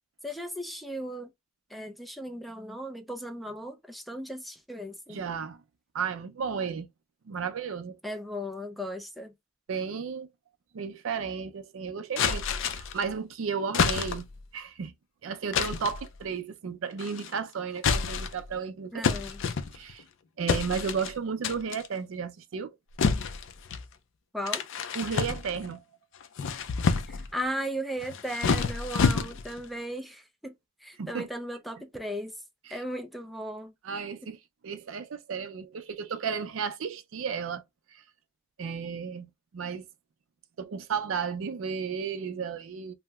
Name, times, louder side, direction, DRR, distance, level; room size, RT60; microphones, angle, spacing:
voice 1, 0.2-1.3 1.7-5.2 8.0-9.3 18.9-19.4 24.3-24.6 27.1-32.4 32.7-33.7, equal, ahead, 0.4 m, -36 dB
voice 2, 5.1-5.6 5.9-6.9 7.3-8.0 9.7-10.3 10.7-14.3 14.5-14.9 15.2-18.9 19.7-20.0 20.4-22.7 24.9-25.8 31.0-31.3 33.8-34.4 34.6-37.6 38.6-39.9 40.6-42.9, right 6 dB, 70° right, 0.4 m, -33 dB
sound 1, 12.2-13.0 13.7-14.4 15.5-16.0 17.0-17.4 17.8-18.5 19.0-20.0 20.5-21.1 21.4-21.9 23.0-23.9 24.5-25.7 26.2-27.3 28.0-29.6, left 5 dB, 60° left, 0.4 m, -28 dB
2.7 x 2.1 x 3.3 m
head